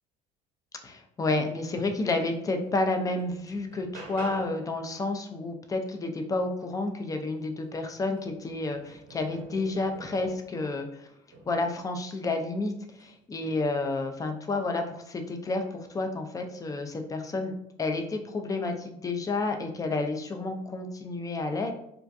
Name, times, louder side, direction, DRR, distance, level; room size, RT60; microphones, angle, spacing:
voice 1, 0.8-11.1 11.5-12.7 13.0-17.5 17.8-21.7, left 2 dB, 20° left, 5 dB, 0.4 m, -30 dB
sound 1, 2.4-2.5 2.9-4.7 7.1-7.2 7.6-10.6 11.3-11.9 12.9-13.2, right 2 dB, 70° right, 0.7 m, -48 dB
2.4 x 2.2 x 2.5 m, 0.76 s
hypercardioid pair, 75°, 16 cm